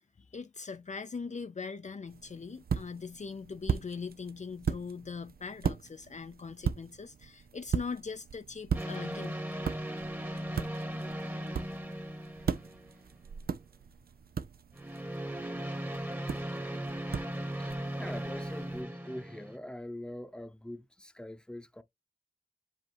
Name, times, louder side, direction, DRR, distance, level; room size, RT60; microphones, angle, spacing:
voice 1, 0.3-9.4, left 5 dB, 50° left, 0.5 m, -41 dB
sound 1, 2.1-18.8, right 6 dB, 85° right, 0.5 m, -38 dB
sound 2, 8.7-13.2 14.7-19.6, right 1 dB, 15° right, 1.2 m, -38 dB
voice 2, 17.6-21.8, left 1 dB, 5° left, 0.8 m, -43 dB
7.7 x 2.7 x 4.6 m
wide cardioid pair, 75°, 15 cm